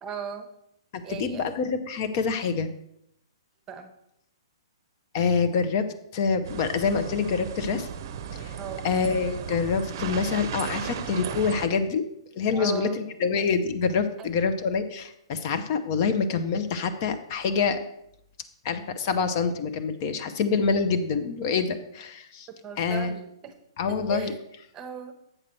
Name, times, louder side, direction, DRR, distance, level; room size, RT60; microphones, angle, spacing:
voice 1, 0.0-0.5 1.0-1.5 3.7-3.9 8.6-8.9 12.5-12.9 14.2-14.3 22.6-23.5 23.9-24.4 24.7-25.1, right 7 dB, 20° right, 7 dB, 0.9 m, -37 dB
voice 2, 0.9-2.7 5.1-5.9 6.1-7.9 8.3-8.6 8.8-12.0 12.4-17.8 18.6-22.5 22.8-23.2 23.8-24.3, left 5 dB, 40° left, 8 dB, 0.7 m, -26 dB
sound 1, 6.4-11.7, right 7 dB, 45° right, 0.6 m, -35 dB
7.8 x 6.1 x 4.4 m, 0.75 s
figure-of-eight pair, 115°, 3 cm